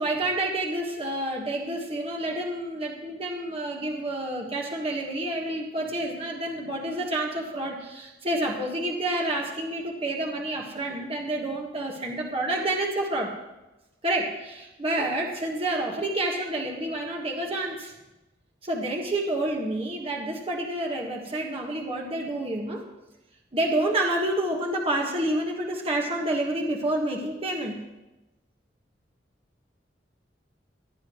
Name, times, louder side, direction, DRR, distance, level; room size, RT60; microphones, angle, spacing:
voice 1, 0.0-13.3 14.0-17.9 18.6-22.8 23.5-27.8, right 1 dB, 35° right, -1 dB, 1.5 m, -29 dB
19.0 x 11.5 x 3.1 m, 1.0 s
head